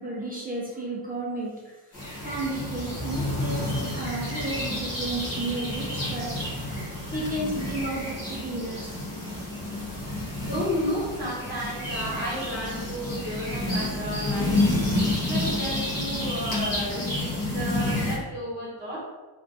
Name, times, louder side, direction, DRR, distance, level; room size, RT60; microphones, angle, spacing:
voice 1, 0.0-6.4 7.1-8.9 9.2-9.3, right 2 dB, 20° right, -6 dB, 0.5 m, -33 dB
sound 1, 1.9-18.2, left 1 dB, 40° left, 1.3 m, -29 dB
voice 2, 10.4-14.8 15.2-19.0, equal, 5° left, -10 dB, 1.3 m, -32 dB
3.3 x 2.5 x 4.0 m, 1.2 s
wide cardioid pair, 180°, 49 cm